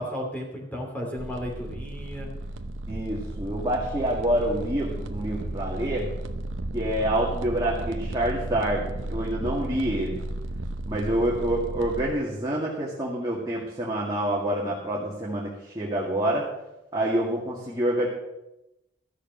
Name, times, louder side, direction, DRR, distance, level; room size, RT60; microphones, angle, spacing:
voice 1, 0.0-2.3, equal, 10° left, -1 dB, 2.7 m, -34 dB
sound 1, 1.2-12.1, right 1 dB, 90° right, 0.8 m, -34 dB
voice 2, 2.9-6.1 6.7-10.2 10.9-16.5 16.9-18.1, right 1 dB, 20° right, -5 dB, 2.0 m, -27 dB
13.5 x 6.6 x 7.9 m, 0.91 s
head